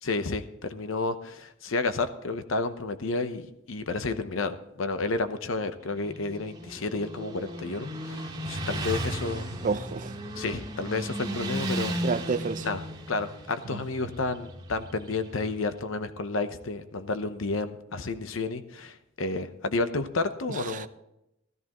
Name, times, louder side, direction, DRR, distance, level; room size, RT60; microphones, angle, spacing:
voice 1, 0.0-9.5 10.4-12.0 12.6-12.8 13.1-20.9, left 3 dB, 75° left, 0.8 m, -31 dB
Motorcycle, 5.8-15.6, right 1 dB, 20° right, 2.0 m, -35 dB
voice 2, 9.6-10.1 12.0-12.7 13.7-13.8 20.5-20.9, right 5 dB, 40° right, 0.5 m, -30 dB
13.5 x 13.5 x 3.0 m
head